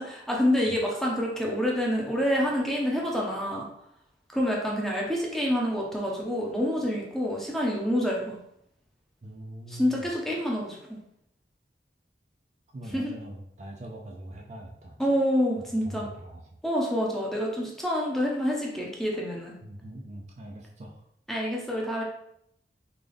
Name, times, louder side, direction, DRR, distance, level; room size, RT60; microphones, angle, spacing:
voice 1, 0.0-3.7 4.3-8.4 9.7-11.0 12.9-13.2 15.0-16.1 16.6-19.5 21.3-22.0, equal, ahead, -3 dB, 0.6 m, -27 dB
voice 2, 9.2-10.1 12.7-15.0 15.8-16.6 19.6-21.0, right 1 dB, 40° right, 0 dB, 0.4 m, -42 dB
3.8 x 2.3 x 3.4 m, 0.74 s
head